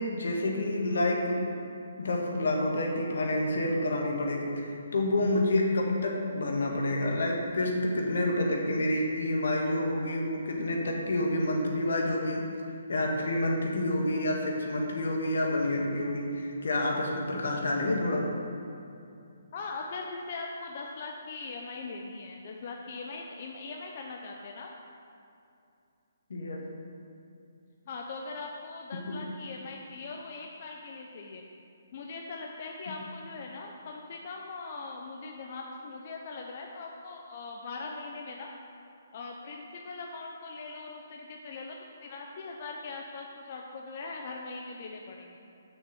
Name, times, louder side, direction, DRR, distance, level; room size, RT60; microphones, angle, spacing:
voice 1, 0.1-1.5 2.0-12.5 12.9-18.3 26.3-26.6 29.1-29.2, left 1 dB, 75° left, 0 dB, 1.9 m, -28 dB
voice 2, 19.5-24.7 27.9-31.4 31.9-38.5 39.1-41.7 42.0-45.4, left 3 dB, 40° left, 0 dB, 0.6 m, -41 dB
6.6 x 6.2 x 7.5 m, 2.6 s
hypercardioid pair, 165°, 0 cm